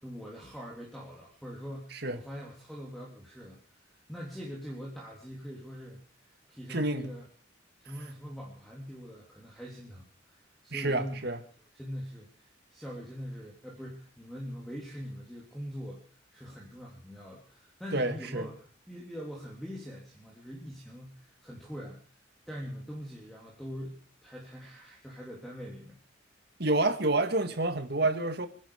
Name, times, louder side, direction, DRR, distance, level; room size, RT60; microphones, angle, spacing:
voice 1, 0.0-3.8 4.1-7.2 7.8-11.3 11.7-16.0 16.3-22.0 22.5-23.9 24.2-26.0, equal, ahead, 3.3 m, -43 dB
voice 2, 6.7-7.1 10.7-11.4 17.9-18.5 26.6-28.5, right 2 dB, 55° right, 1.9 m, -28 dB
26.5 x 11.0 x 5.0 m
head